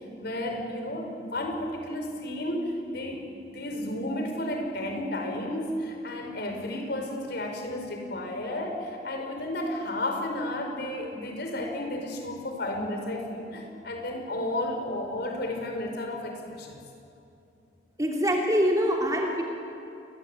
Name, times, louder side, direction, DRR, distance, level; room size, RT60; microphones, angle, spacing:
voice 1, 0.2-16.8, left 1 dB, 60° left, 3 dB, 4.9 m, -32 dB
voice 2, 18.0-19.4, equal, 20° right, 0 dB, 2.8 m, -24 dB
28.5 x 22.0 x 9.1 m, 2.7 s
head